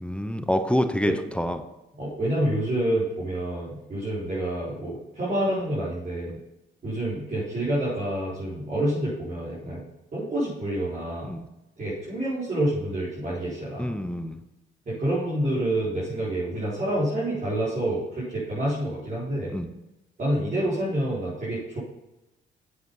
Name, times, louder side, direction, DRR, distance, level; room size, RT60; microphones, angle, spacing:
voice 1, 0.0-1.6 6.3-6.4 9.6-9.8 11.3-11.5 13.8-14.4 19.5-19.7, equal, 5° left, 8 dB, 0.8 m, -27 dB
voice 2, 2.0-6.3 6.8-9.8 10.1-11.3 11.8-13.9 14.9-19.5 20.2-21.8, right 1 dB, 40° right, -9 dB, 4.5 m, -28 dB
8.2 x 8.2 x 5.6 m, 0.95 s
cardioid pair, 90°, 20 cm